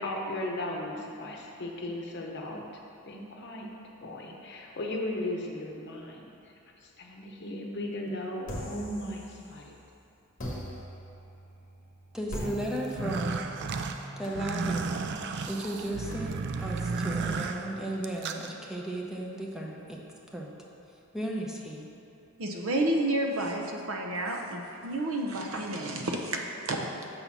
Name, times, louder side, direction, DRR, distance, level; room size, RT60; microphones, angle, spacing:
voice 1, 0.0-2.6 3.0-3.7 4.0-6.3 6.8-9.8, left 1 dB, 55° left, 0 dB, 0.9 m, -36 dB
sound 1, 8.5-9.8 10.4-16.1, equal, 40° left, 1.3 m, -42 dB
voice 2, 12.1-13.5 14.2-15.0 15.5-20.0 20.3-20.5 21.1-21.9, right 1 dB, 5° right, -2 dB, 0.7 m, -35 dB
sound 2, 12.8-18.5, right 4 dB, 55° right, 0.4 m, -33 dB
voice 3, 22.4-26.8, right 1 dB, 70° right, 1 dB, 0.8 m, -30 dB
6.7 x 4.1 x 5.9 m, 2.7 s
head